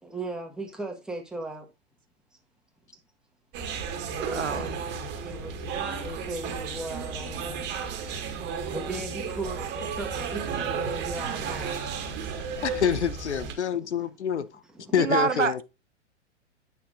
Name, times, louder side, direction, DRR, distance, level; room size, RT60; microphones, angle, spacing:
voice 1, 0.0-1.7 4.1-4.8 5.1-5.6 5.8-7.6 8.2-11.8 13.6-14.1 14.4-14.5 14.7-14.9 15.3-15.4, right 2 dB, ahead, 1.5 m, -38 dB
sound 1, 3.5-13.5, right 6 dB, 30° right, 1.9 m, -33 dB
voice 2, 4.3-4.7 15.0-15.6, right 5 dB, 85° right, 0.8 m, -26 dB
voice 3, 12.6-14.4 14.9-15.6, left 8 dB, 70° left, 0.8 m, -26 dB
9.6 x 5.8 x 2.6 m
figure-of-eight pair, 105°, 36 cm